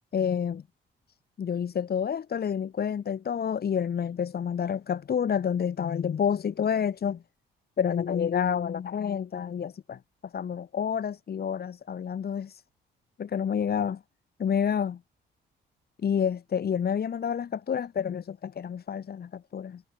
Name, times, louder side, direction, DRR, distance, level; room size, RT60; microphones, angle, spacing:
voice 1, 0.1-0.6 1.4-7.2 7.8-10.0 10.3-12.6 13.2-14.0 14.4-15.0 16.0-19.8, left 8 dB, 50° left, 3.8 m, -29 dB
cardioid pair, 90°, 20 cm